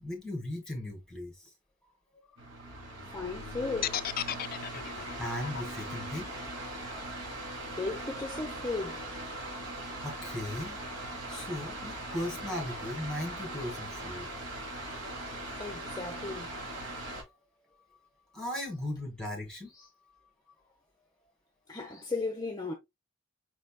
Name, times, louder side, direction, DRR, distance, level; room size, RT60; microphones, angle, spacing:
voice 1, 0.0-1.5 2.3-3.2 4.4-4.6 5.2-6.3 10.0-10.8 11.3-14.3 17.2-17.3 18.3-19.7, left 1 dB, 5° left, 2.0 m, -38 dB
sound 1, 2.4-17.2, right 1 dB, 65° right, 2.4 m, -40 dB
voice 2, 3.1-4.0 7.8-9.0 15.6-16.5 19.7-19.9 21.7-22.7, left 3 dB, 20° left, 0.8 m, -35 dB
sound 2, 3.8-7.9, left 11 dB, 45° left, 0.3 m, -36 dB
6.0 x 3.9 x 2.2 m
head